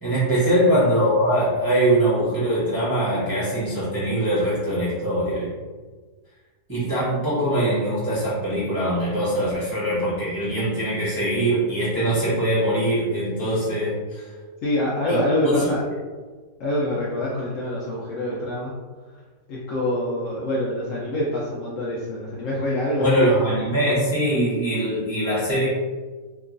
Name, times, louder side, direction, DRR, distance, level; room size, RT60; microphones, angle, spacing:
voice 1, 0.0-5.5 6.7-14.3 15.1-15.2 15.4-15.7 23.0-25.7, right 1 dB, 20° right, -11 dB, 0.6 m, -22 dB
voice 2, 14.6-15.8 16.6-18.7 19.5-23.3, left 1 dB, 70° left, -6 dB, 0.8 m, -25 dB
2.9 x 2.4 x 2.4 m, 1.4 s
omnidirectional pair, 1.7 m